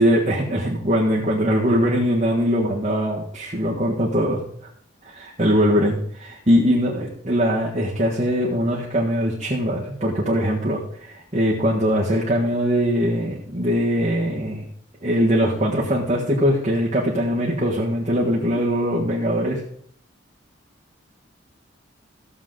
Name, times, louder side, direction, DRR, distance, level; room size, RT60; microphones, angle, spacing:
voice 1, 0.0-4.4 5.0-14.6 15.0-19.6, equal, 35° right, -5 dB, 1.6 m, -21 dB
15.0 x 7.2 x 3.9 m, 0.66 s
head